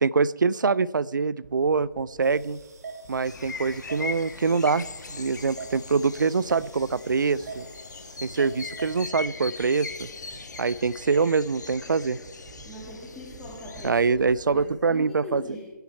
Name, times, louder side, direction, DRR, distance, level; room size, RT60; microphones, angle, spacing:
voice 1, 0.0-2.6 3.1-7.7 8.2-10.1 10.6-12.2 13.8-15.4, right 4 dB, 65° right, 21 dB, 0.4 m, -24 dB
sound 1, 1.4-14.8, right 4 dB, 30° right, 1.1 m, -52 dB
sound 2, 2.2-9.0, right 4 dB, 50° right, 1.9 m, -44 dB
sound 3, 3.2-13.9, left 4 dB, 60° left, 1.4 m, -40 dB
voice 2, 12.6-15.7, left 2 dB, 5° left, -5 dB, 1.6 m, -41 dB
20.0 x 9.1 x 4.5 m, 1.3 s
figure-of-eight pair, 145°, 11 cm